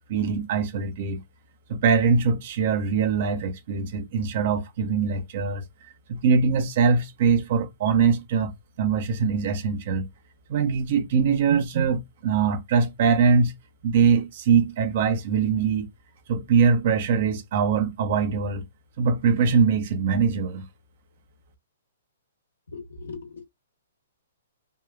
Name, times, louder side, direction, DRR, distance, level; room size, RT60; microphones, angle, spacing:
voice 1, 0.1-1.2 1.7-5.6 6.1-8.5 8.8-10.1 10.5-13.5 13.8-15.9 16.3-18.6 19.0-20.7, right 5 dB, 55° right, 0.7 m, -22 dB
voice 2, 22.7-23.4, left 4 dB, 80° left, 1.1 m, -39 dB
3.6 x 2.3 x 2.3 m
hypercardioid pair, 125°, 0 cm